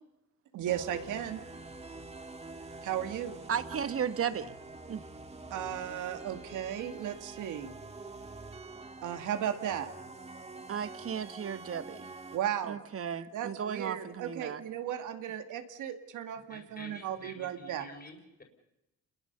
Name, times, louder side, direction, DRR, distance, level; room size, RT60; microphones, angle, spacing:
voice 1, 0.5-1.4 2.8-3.4 5.5-7.7 9.0-9.9 12.3-12.8 13.2-17.9, right 10 dB, 85° right, 2.3 m, -35 dB
sound 1, 0.7-12.4, right 3 dB, 20° right, 2.6 m, -46 dB
voice 2, 3.5-4.5 4.9-5.0 10.7-12.1 12.7-14.6, right 8 dB, 50° right, 1.5 m, -35 dB
voice 3, 16.5-18.4, left 2 dB, 30° left, 4.8 m, -49 dB
30.0 x 21.5 x 6.9 m
cardioid pair, 90°, 30 cm